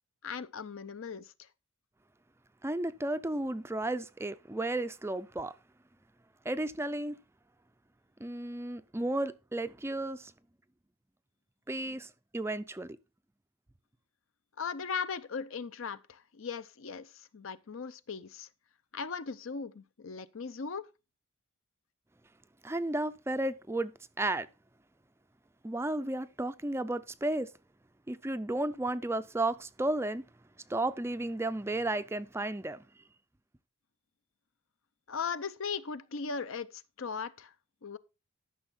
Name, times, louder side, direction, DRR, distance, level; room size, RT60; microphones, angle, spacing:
voice 1, 0.2-1.5 14.6-18.5 18.9-20.9 35.1-37.5 37.8-38.0, left 5 dB, 65° left, 0.6 m, -38 dB
voice 2, 2.6-5.5 6.5-7.2 8.2-10.3 11.7-12.1 12.3-13.0 22.6-23.9 24.2-24.5 25.6-27.5 28.1-30.2 30.7-32.8, right 2 dB, 10° right, 0.4 m, -33 dB
12.5 x 6.2 x 4.2 m
head